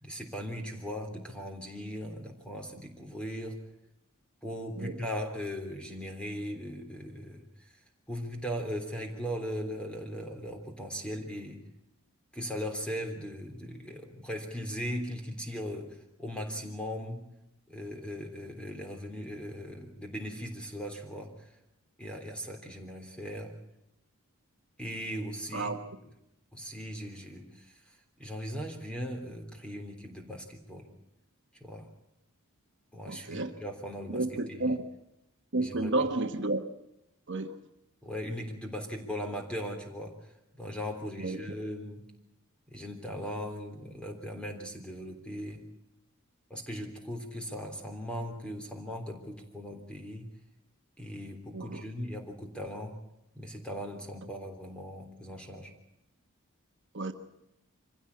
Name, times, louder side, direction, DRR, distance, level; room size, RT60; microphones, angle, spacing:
voice 1, 0.0-3.6 4.4-7.7 8.1-11.6 12.3-17.3 17.7-21.5 22.0-23.5 24.8-25.7 26.5-30.9 31.6-31.9 32.9-34.7 35.6-35.9 38.0-40.1 40.5-42.0 42.7-45.6 46.5-50.3 51.0-53.0 53.3-55.7, equal, 5° left, 3 dB, 3.4 m, -39 dB
voice 2, 33.1-33.6 34.1-34.9 35.5-36.6 37.3-37.6 41.2-41.4 51.5-51.8 56.9-57.1, right 2 dB, 55° right, 6 dB, 1.2 m, -31 dB
25.5 x 16.0 x 8.6 m, 0.84 s
head